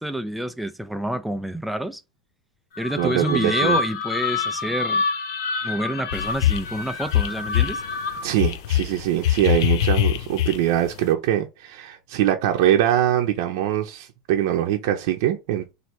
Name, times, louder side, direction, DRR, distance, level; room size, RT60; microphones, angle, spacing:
voice 1, 0.0-2.0 2.8-5.0 5.6-7.8, right 1 dB, ahead, 0.4 m, -28 dB
sound 1, 2.7-8.5, left 4 dB, 60° left, 0.9 m, -28 dB
voice 2, 3.0-3.8 8.2-15.7, right 12 dB, 65° right, 0.7 m, -23 dB
sound 2, 6.1-6.8 7.1-7.8 8.4-10.9, left 13 dB, 75° left, 0.4 m, -22 dB
3.2 x 2.7 x 4.4 m
supercardioid pair, 145°, 2 cm